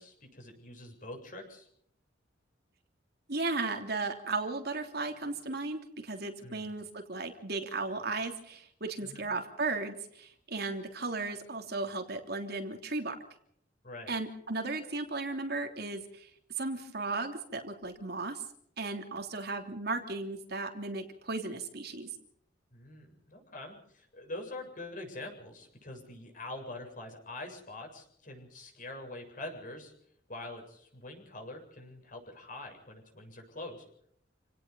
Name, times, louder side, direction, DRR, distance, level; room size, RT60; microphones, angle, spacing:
voice 1, 0.0-1.7 6.4-6.7 9.0-9.3 13.8-14.2 22.7-29.9 30.3-33.9, left 2 dB, 45° left, 3 dB, 7.6 m, -44 dB
voice 2, 3.3-13.2 14.1-16.3 16.6-18.4 18.8-22.1, right 3 dB, 55° right, 4 dB, 3.2 m, -35 dB
29.0 x 18.0 x 5.5 m, 0.66 s
head